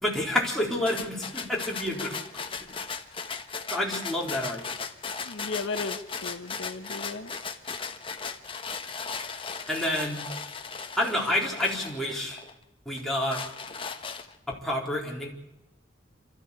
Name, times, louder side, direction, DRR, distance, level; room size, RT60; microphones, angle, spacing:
voice 1, 0.0-2.2 2.6-2.7 3.7-4.6 9.7-10.3 11.0-12.4 12.9-13.4 14.5-15.3, left 1 dB, ahead, -3 dB, 4.0 m, -29 dB
sound 1, 0.9-12.5 13.0-14.5, left 5 dB, 25° left, 1.3 m, -37 dB
voice 2, 5.2-7.3, left 3 dB, 85° left, 8 dB, 1.3 m, -35 dB
26.5 x 14.0 x 8.5 m, 0.93 s
head